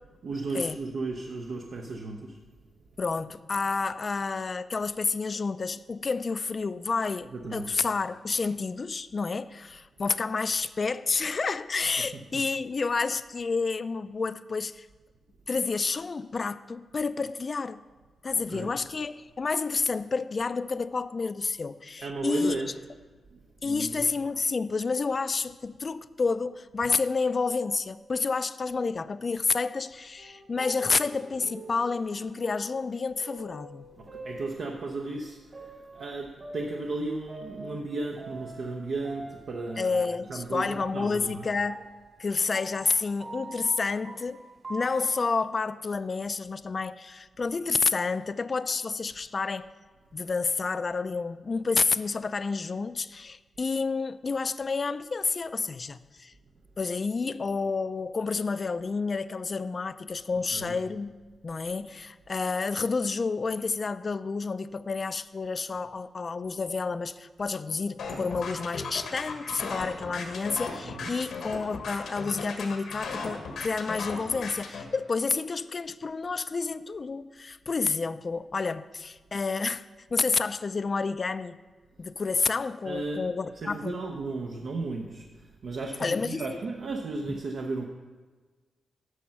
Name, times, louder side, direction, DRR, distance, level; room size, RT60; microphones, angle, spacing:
voice 1, 0.2-2.4 7.3-7.7 12.0-12.1 12.3-12.4 18.5-18.8 22.0-22.7 23.3-24.1 34.0-40.0 40.3-41.5 60.5-60.8 70.8-71.1 82.8-87.8, right 3 dB, 70° right, 0.8 m, -35 dB
voice 2, 3.0-14.9 15.5-17.8 18.2-22.6 23.6-33.9 39.8-41.8 42.2-44.4 44.7-49.7 50.1-56.3 56.8-61.1 61.4-79.8 80.1-81.6 82.0-83.9 86.0-86.5, left 4 dB, 40° left, 0.4 m, -29 dB
sound 1, 30.2-35.0 35.5-38.8 39.0-45.2, right 1 dB, 45° right, 2.2 m, -44 dB
sound 2, 68.0-74.8, left 4 dB, 90° left, 1.3 m, -36 dB
9.8 x 6.4 x 5.8 m
cardioid pair, 90°, 0 cm